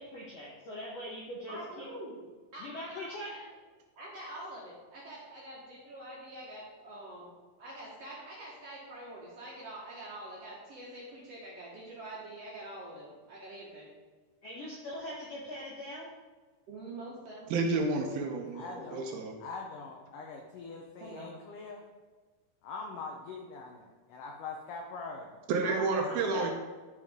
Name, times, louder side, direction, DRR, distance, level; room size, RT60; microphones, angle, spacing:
voice 1, 0.0-1.9 2.6-3.5 14.4-16.1 18.5-19.1 26.0-26.5, left 1 dB, 70° left, -5 dB, 1.5 m, -42 dB
voice 2, 1.5-2.2 2.5-3.1 4.0-7.3 7.6-13.9 16.7-17.5 21.0-21.3, right 1 dB, 55° right, -6 dB, 1.8 m, -45 dB
voice 3, 17.5-18.6 18.9-19.3 25.5-26.5, right 3 dB, 75° right, 3 dB, 2.4 m, -30 dB
voice 4, 18.5-19.1 19.4-21.8 22.6-25.3 25.6-26.5, left 4 dB, 90° left, 1 dB, 1.8 m, -43 dB
12.0 x 4.9 x 3.6 m, 1.4 s
omnidirectional pair, 4.7 m